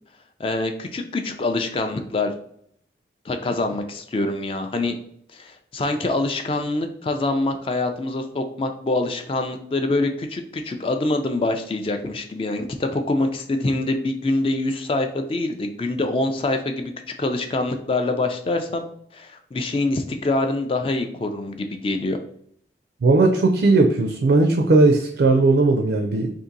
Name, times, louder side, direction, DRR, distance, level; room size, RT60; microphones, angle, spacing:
voice 1, 0.4-2.3 3.3-5.0 5.3-16.9 17.2-18.8 19.1-22.2, left 2 dB, 30° left, 6 dB, 0.3 m, -25 dB
voice 2, 23.0-26.3, right 3 dB, 70° right, 3 dB, 0.4 m, -17 dB
2.7 x 2.5 x 3.8 m, 0.65 s
head